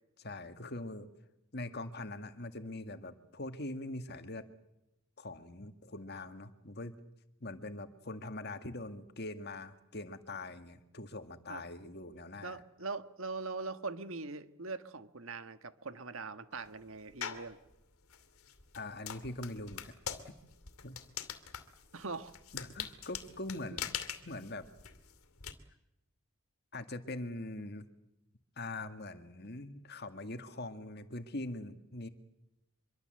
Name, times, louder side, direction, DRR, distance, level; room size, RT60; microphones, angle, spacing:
voice 1, 0.2-1.1 1.5-4.5 5.2-6.9 7.4-12.6 18.7-19.9 20.8-21.0 22.5-23.9 24.2-24.7 26.7-27.9 28.6-32.1, left 2 dB, 50° left, 1.9 m, -42 dB
voice 2, 12.4-17.6 21.9-22.3 23.7-23.8, right 4 dB, 65° right, 1.5 m, -41 dB
sound 1, 17.2-17.5 18.1-25.5, left 8 dB, 80° left, 2.6 m, -42 dB
25.0 x 23.5 x 7.8 m
head